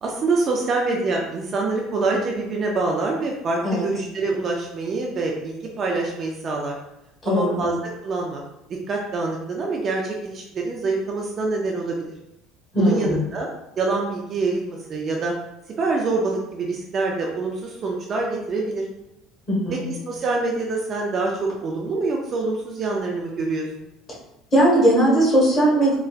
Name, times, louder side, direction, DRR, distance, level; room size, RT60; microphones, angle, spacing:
voice 1, 0.0-6.8 7.3-8.4 8.9-12.1 12.8-13.5 13.8-15.3 15.8-18.9 19.7-23.7, right 3 dB, 30° right, -1 dB, 0.4 m, -25 dB
voice 2, 7.2-7.6 12.7-13.2 19.5-19.8 24.5-25.9, right 1 dB, 25° left, -6 dB, 1.3 m, -18 dB
3.8 x 2.2 x 2.3 m, 0.87 s
cardioid pair, 165°, 0 cm